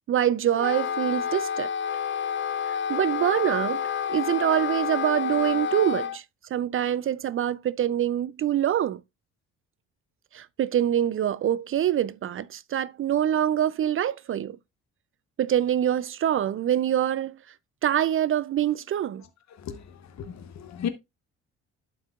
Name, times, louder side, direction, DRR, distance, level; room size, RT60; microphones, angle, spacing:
voice 1, 0.1-1.7 2.7-3.8 4.1-6.2 6.5-9.0 10.3-14.6 15.4-17.4 17.8-19.2, right 10 dB, 40° right, 0.4 m, -25 dB
Wind instrument woodwind instrument, 0.5-6.2, left 8 dB, 35° left, 0.4 m, -29 dB
voice 2, 20.2-20.9, left 8 dB, 55° left, 1.0 m, -33 dB
11.5 x 4.6 x 2.3 m
supercardioid pair, 60°, 33 cm